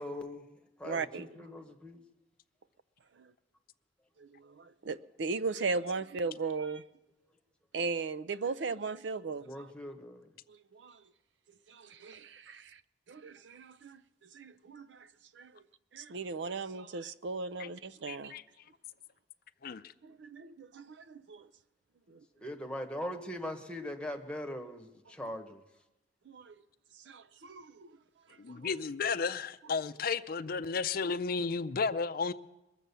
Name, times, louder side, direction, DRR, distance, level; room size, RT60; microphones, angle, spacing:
voice 1, 0.0-0.4 0.8-2.0 9.4-10.3 22.4-25.6, left 1 dB, 5° left, 1.1 m, -40 dB
voice 2, 0.8-1.3 3.2-3.3 4.2-6.8 7.7-9.7 10.5-11.0 11.7-12.8 13.1-14.0 14.3-15.6 15.9-18.3 20.0-21.5 22.1-22.2 26.3-26.6 27.0-28.0 28.5-28.7, right 4 dB, 80° right, 0.5 m, -38 dB
voice 3, 18.1-18.4 19.6-19.8 28.4-32.3, left 5 dB, 55° left, 0.5 m, -33 dB
21.5 x 7.4 x 6.9 m
head